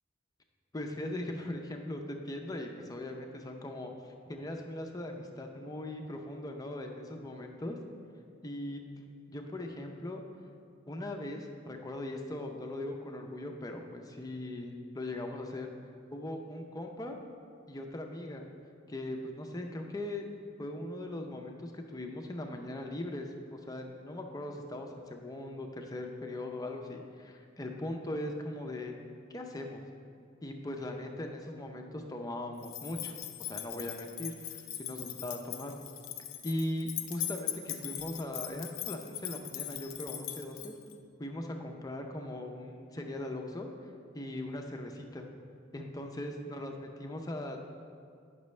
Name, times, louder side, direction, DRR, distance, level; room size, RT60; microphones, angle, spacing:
voice 1, 0.7-3.9 4.3-7.8 8.4-8.8 9.3-10.2 10.9-15.7 16.1-17.2 17.7-18.5 18.9-20.3 20.6-28.9 29.3-29.8 30.4-35.7 36.4-40.7 41.2-43.7 44.1-45.3 45.7-47.6, left 1 dB, 20° left, 3 dB, 0.5 m, -39 dB
sound 1, 32.6-40.9, left 11 dB, 80° left, 0.5 m, -40 dB
9.2 x 6.0 x 3.2 m, 2.3 s
head